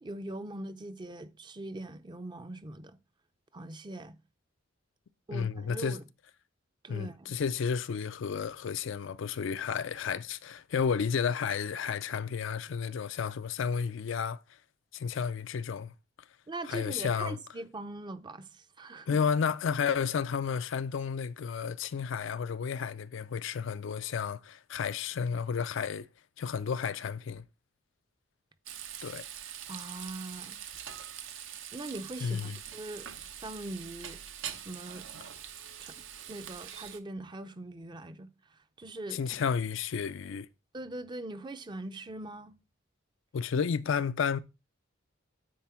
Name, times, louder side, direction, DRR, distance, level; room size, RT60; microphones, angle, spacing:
voice 1, 0.0-3.0 3.5-4.2 5.3-6.1 6.8-7.4 16.5-19.2 29.7-30.6 31.7-33.1 33.4-34.2 34.5-35.1 35.8-36.0 36.3-39.2 40.7-42.5, right 2 dB, 20° right, 0.5 m, -41 dB
voice 2, 5.3-6.0 6.9-14.4 14.9-15.9 16.7-17.4 19.1-26.1 26.4-27.4 29.0-29.2 32.2-32.6 39.1-40.5 43.3-44.4, left 6 dB, 65° left, 0.4 m, -32 dB
Frying (food), 28.7-37.0, right 9 dB, 70° right, 0.8 m, -44 dB
9.3 x 4.2 x 4.3 m
head